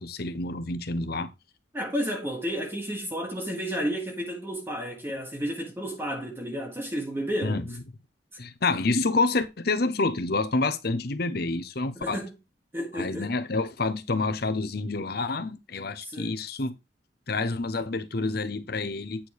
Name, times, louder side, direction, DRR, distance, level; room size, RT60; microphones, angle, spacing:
voice 1, 0.0-1.3 7.4-7.6 8.4-12.2 12.9-16.7 17.3-19.3, left 3 dB, 60° left, 0.9 m, -28 dB
voice 2, 1.7-7.6 11.9-12.3 12.7-13.3 16.0-16.3, equal, 15° right, 1.4 m, -32 dB
8.8 x 4.5 x 4.8 m
head